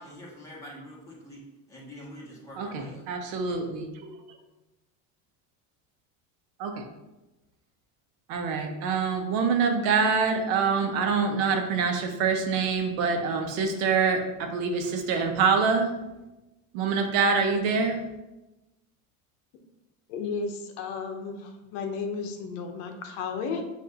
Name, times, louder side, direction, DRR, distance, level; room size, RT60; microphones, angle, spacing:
voice 1, 0.0-1.4 1.7-3.0, equal, 10° left, -6 dB, 1.3 m, -45 dB
voice 2, 2.6-4.2 6.6-6.8 8.3-15.9 16.7-18.1, right 5 dB, 80° right, 4 dB, 0.8 m, -25 dB
voice 3, 20.1-23.6, left 5 dB, 70° left, 4 dB, 0.8 m, -33 dB
6.4 x 2.7 x 2.8 m, 1.0 s
supercardioid pair, 130°, 40 cm